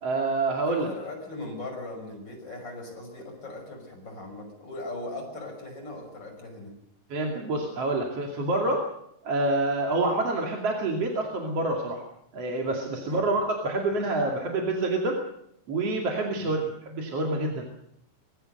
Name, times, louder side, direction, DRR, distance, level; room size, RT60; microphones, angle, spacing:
voice 1, 0.0-0.9 7.1-8.9 9.2-12.0 12.3-15.2 15.7-17.7, right 2 dB, 45° right, 0 dB, 3.3 m, -27 dB
voice 2, 0.6-6.7 13.0-13.2 16.3-16.5, left 2 dB, 30° left, 2 dB, 6.6 m, -39 dB
24.5 x 20.5 x 6.6 m, 0.74 s
omnidirectional pair, 4.0 m